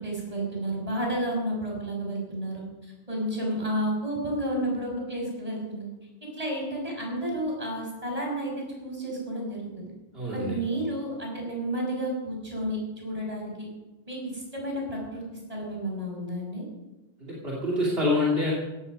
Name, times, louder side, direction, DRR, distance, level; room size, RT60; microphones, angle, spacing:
voice 1, 0.0-5.8 6.3-8.5 8.8-9.9 10.3-13.7 14.1-15.2 15.5-16.6, right 1 dB, 35° right, -2 dB, 6.2 m, -31 dB
voice 2, 10.1-10.6 17.2-18.5, left 2 dB, 60° right, -4 dB, 3.0 m, -26 dB
16.5 x 14.5 x 5.4 m, 1.1 s
omnidirectional pair, 1.1 m